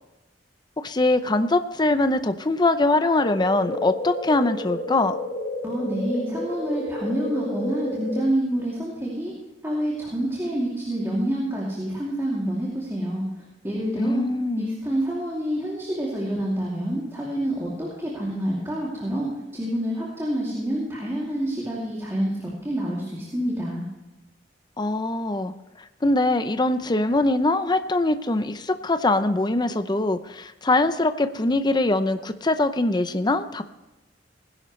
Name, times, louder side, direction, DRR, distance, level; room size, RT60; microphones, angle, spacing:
voice 1, 0.8-5.1 14.0-14.7 24.8-25.5 26.0-33.6, left 2 dB, 25° left, 9 dB, 0.6 m, -22 dB
sound 1, 3.2-8.2, left 1 dB, 40° left, 4.8 m, -31 dB
voice 2, 5.6-9.3 9.6-13.2 13.6-14.2 14.6-23.8, right 1 dB, 15° right, -5 dB, 2.8 m, -27 dB
19.5 x 11.0 x 3.2 m, 1.0 s
head